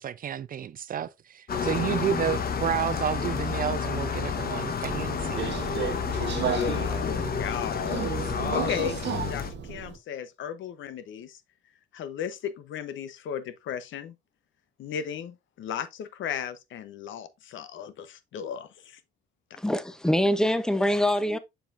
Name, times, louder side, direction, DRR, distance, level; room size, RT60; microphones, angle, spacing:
voice 1, 0.0-5.5, right 9 dB, 45° right, 0.4 m, -31 dB
sound 1, 1.5-9.5, left 6 dB, 50° left, 1.1 m, -30 dB
Subway metro underground, 4.8-10.0, right 8 dB, 65° right, 1.1 m, -33 dB
voice 2, 6.0-8.1 8.5-11.4 11.9-14.1 14.8-19.0 19.5-19.6, left 8 dB, 75° left, 0.9 m, -36 dB
voice 3, 19.6-21.4, equal, 5° left, 0.7 m, -24 dB
7.1 x 5.6 x 2.5 m
cardioid pair, 90°, 20 cm